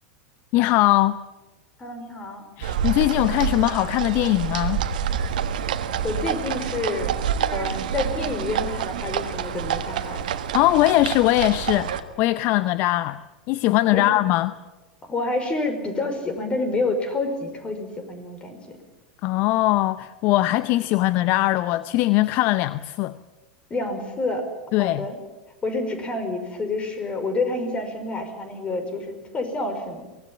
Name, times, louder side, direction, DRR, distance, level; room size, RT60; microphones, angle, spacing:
voice 1, 0.5-1.2 2.6-4.8 10.5-13.2 13.5-14.5 19.2-23.2 24.7-25.1, left 17 dB, 50° left, 0.7 m, -21 dB
voice 2, 1.8-2.4 6.0-7.2 7.5-10.3 13.9-14.1 15.0-18.8 23.7-24.5 24.8-25.2 25.6-30.0, left 2 dB, 25° left, 5.3 m, -28 dB
sound 1, 2.6-12.0, right 8 dB, 65° right, 1.6 m, -27 dB
23.5 x 19.0 x 8.8 m
figure-of-eight pair, 90°, 5 cm